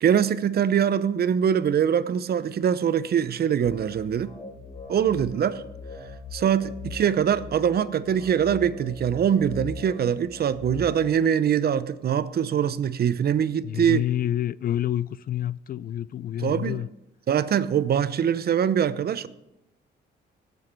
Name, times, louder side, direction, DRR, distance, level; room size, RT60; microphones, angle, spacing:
voice 1, 0.0-4.3 4.9-5.6 6.3-14.0 16.4-16.8 17.3-19.3, right 8 dB, 50° right, 0.7 m, -23 dB
sound 1, 3.6-11.0, left 4 dB, 25° left, 2.0 m, -41 dB
voice 2, 13.6-16.9, left 11 dB, 50° left, 0.4 m, -28 dB
18.0 x 7.0 x 4.6 m
cardioid pair, 90°, 20 cm